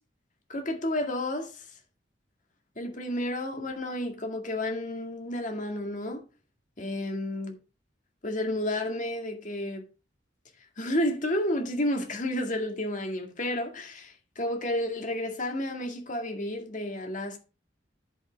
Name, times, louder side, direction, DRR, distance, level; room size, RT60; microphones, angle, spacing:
voice 1, 0.5-1.7 2.8-6.2 6.8-7.6 8.2-9.9 10.8-17.4, left 1 dB, 45° left, 2.1 m, -31 dB
10.5 x 5.5 x 4.4 m
head